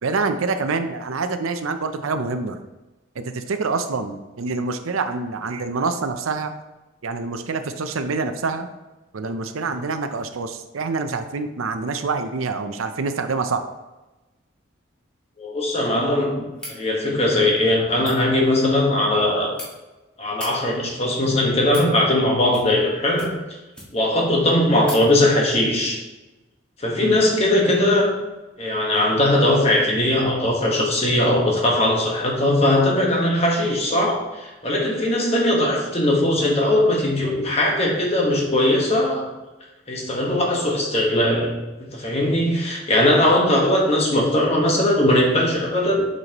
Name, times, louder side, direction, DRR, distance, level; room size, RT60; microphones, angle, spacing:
voice 1, 0.0-2.6 3.2-6.5 7.0-8.7 9.1-13.6 27.0-27.2, right 4 dB, 85° right, 8 dB, 0.6 m, -26 dB
voice 2, 15.4-19.5 20.2-23.3 23.9-26.0 26.8-28.1 28.6-39.3 39.9-41.5 41.8-46.0, left 1 dB, 30° left, -1 dB, 1.4 m, -20 dB
sound 1, 16.5-16.8 17.9-18.2 19.1-19.7 20.2-20.5 21.3-21.9 22.5-22.9 23.1-24.1 24.4-24.5 24.8-25.0, equal, 5° left, 1.7 m, -37 dB
8.1 x 5.5 x 3.0 m, 1.1 s
head